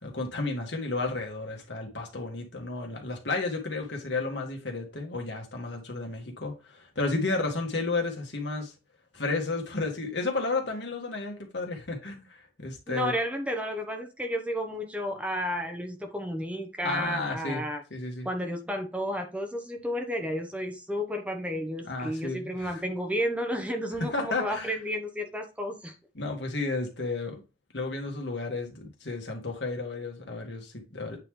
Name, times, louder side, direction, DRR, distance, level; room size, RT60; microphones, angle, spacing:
voice 1, 0.0-8.7 9.1-13.1 16.8-17.6 17.9-18.3 21.8-22.8 24.1-24.8 26.2-27.4 27.7-31.2, left 3 dB, 70° left, 2.0 m, -32 dB
voice 2, 12.9-17.8 18.2-26.0, equal, 5° right, 0.9 m, -32 dB
8.8 x 3.8 x 3.3 m
head